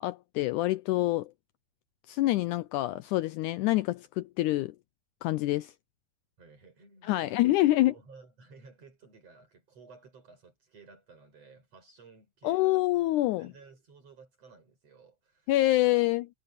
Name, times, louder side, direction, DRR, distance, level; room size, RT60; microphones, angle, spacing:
voice 1, 0.0-1.3 2.1-4.8 5.2-5.7 7.0-7.9 12.4-13.5 15.5-16.3, left 16 dB, 80° left, 1.9 m, -26 dB
voice 2, 6.4-7.5 7.9-12.9 13.4-15.5, right 4 dB, 45° right, 7.4 m, -55 dB
omnidirectional pair, 3.9 m